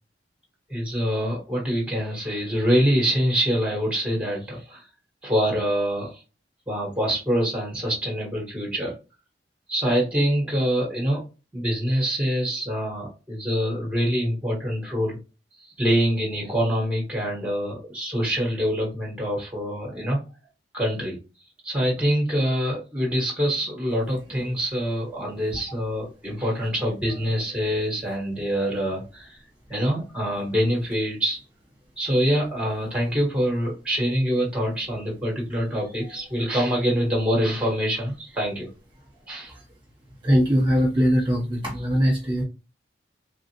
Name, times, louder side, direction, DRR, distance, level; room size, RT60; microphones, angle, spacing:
voice 1, 0.7-4.8 5.2-6.2 6.7-8.9 9.7-11.2 11.5-15.2 15.6-20.2 20.7-21.2 21.6-29.4 29.7-31.4 32.0-38.7 39.3-39.5, equal, 5° right, -1 dB, 1.2 m, -25 dB
voice 2, 40.2-42.4, equal, 25° right, -3 dB, 1.0 m, -21 dB
3.2 x 2.4 x 2.8 m, 0.31 s
head